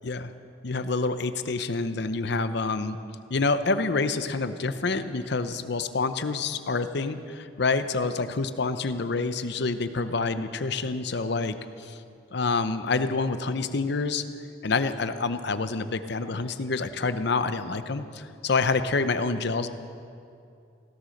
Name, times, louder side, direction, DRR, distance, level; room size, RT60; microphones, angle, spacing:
voice 1, 0.6-3.0 3.3-12.0 12.3-14.2 14.6-19.7, left 3 dB, 60° left, 11 dB, 0.7 m, -27 dB
16.5 x 12.5 x 6.5 m, 2.6 s
head